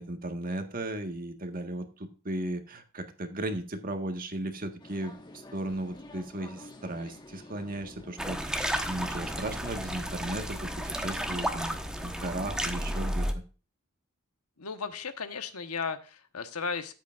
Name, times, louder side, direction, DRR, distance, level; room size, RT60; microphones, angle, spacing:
voice 1, 0.0-5.2 5.5-13.4, right 1 dB, 40° right, 6 dB, 1.6 m, -36 dB
sound 1, 4.8-11.5, left 1 dB, 20° left, 1.5 m, -50 dB
sound 2, 8.2-13.3, equal, 5° right, 1.2 m, -32 dB
voice 2, 14.6-16.9, left 5 dB, 85° left, 9 dB, 1.3 m, -35 dB
14.0 x 8.3 x 2.5 m, 0.35 s
head